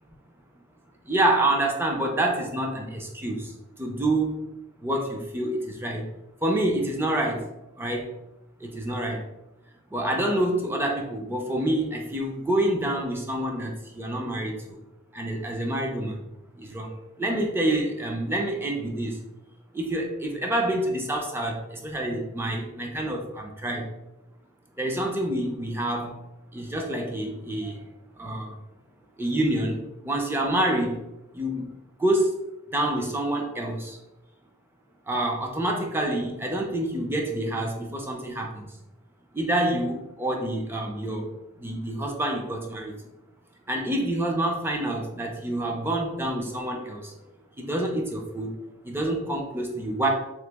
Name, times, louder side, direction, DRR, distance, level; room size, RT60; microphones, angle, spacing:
voice 1, 1.1-4.5 4.8-6.1 6.4-7.5 7.8-8.1 8.6-9.3 9.9-14.8 15.1-16.3 16.6-19.2 19.7-23.9 24.8-26.2 26.5-27.8 28.2-28.6 29.2-31.0 31.3-32.3 32.7-34.0 35.1-38.7 39.3-41.3 41.6-42.9 43.7-47.1 47.6-48.5 48.8-50.1, right 1 dB, 10° right, 1 dB, 0.4 m, -27 dB
2.9 x 2.8 x 3.4 m, 0.95 s
head